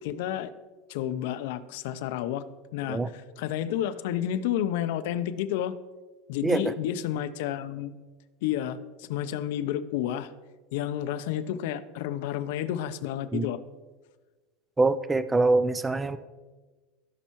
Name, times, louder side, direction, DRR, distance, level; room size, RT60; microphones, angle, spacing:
voice 1, 0.0-0.5 0.9-2.4 2.7-5.7 6.3-8.0 8.4-10.3 10.7-13.6, left 11 dB, 65° left, 11 dB, 0.6 m, -30 dB
voice 2, 6.4-6.7 13.3-13.5 14.8-16.2, right 3 dB, 10° right, 14 dB, 0.4 m, -24 dB
16.5 x 5.6 x 3.0 m, 1.3 s
supercardioid pair, 165°, 0 cm